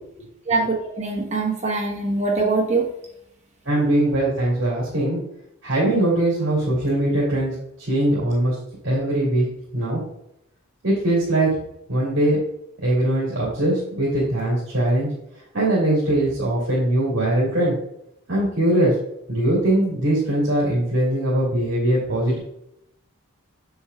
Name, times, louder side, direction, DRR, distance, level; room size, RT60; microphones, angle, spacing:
voice 1, 0.5-2.8, right 3 dB, 30° right, -2 dB, 1.2 m, -23 dB
voice 2, 3.6-5.2 5.6-7.5 7.9-8.5 8.8-9.4 9.7-10.0 10.8-11.5 11.9-12.4 12.8-15.1 15.5-17.7 18.3-18.9 19.3-22.4, right 1 dB, 60° right, -7 dB, 2.6 m, -21 dB
7.9 x 6.9 x 2.3 m, 0.78 s
head